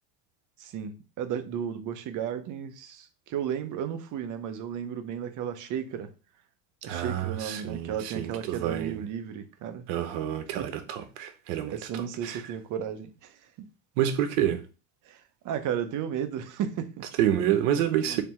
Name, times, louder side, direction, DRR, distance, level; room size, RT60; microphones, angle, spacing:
voice 1, 0.6-6.1 6.8-9.9 10.6-10.7 11.7-13.4 15.0-17.1 18.0-18.2, right 8 dB, 40° right, 0.7 m, -34 dB
voice 2, 6.8-9.0 9.9-12.4 14.0-14.6 17.2-18.2, right 11 dB, 70° right, 1.0 m, -28 dB
3.4 x 2.8 x 4.3 m
supercardioid pair, 110°, 46 cm